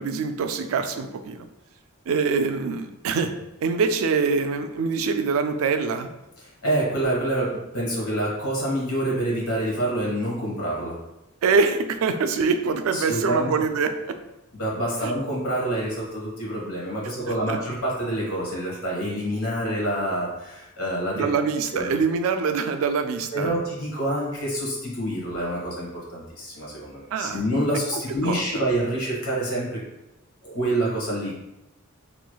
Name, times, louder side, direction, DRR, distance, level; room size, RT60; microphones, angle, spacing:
voice 1, 0.0-1.5 2.1-3.3 3.6-6.1 11.4-14.1 15.0-15.1 17.5-17.6 21.2-23.5 27.1-27.4 27.9-28.5, right 5 dB, 70° right, 8 dB, 0.3 m, -24 dB
voice 2, 6.4-10.9 12.9-13.5 14.5-21.3 21.7-21.9 23.3-29.8 30.4-31.3, right 1 dB, 85° left, -4 dB, 1.2 m, -27 dB
3.1 x 2.9 x 2.3 m, 0.92 s
head